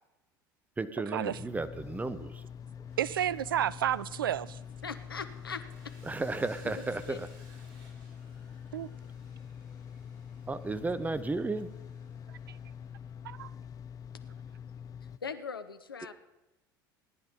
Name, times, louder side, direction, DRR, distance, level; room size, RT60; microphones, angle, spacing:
voice 1, 0.8-2.4 6.0-7.3 10.5-11.7, right 3 dB, 15° right, 12 dB, 1.0 m, -34 dB
sound 1, 1.3-15.2, left 7 dB, 30° left, 0.5 m, -45 dB
Sawing, 2.8-13.1, right 2 dB, 60° right, 6.6 m, -63 dB
voice 2, 3.0-4.6 8.7-8.9 12.5-12.6 13.2-13.5, right 11 dB, 75° right, 20 dB, 0.4 m, -31 dB
voice 3, 4.8-5.6 6.6-7.2 15.2-16.1, left 6 dB, 80° left, 11 dB, 0.8 m, -40 dB
17.5 x 10.5 x 5.4 m, 0.99 s
figure-of-eight pair, 70°, 12 cm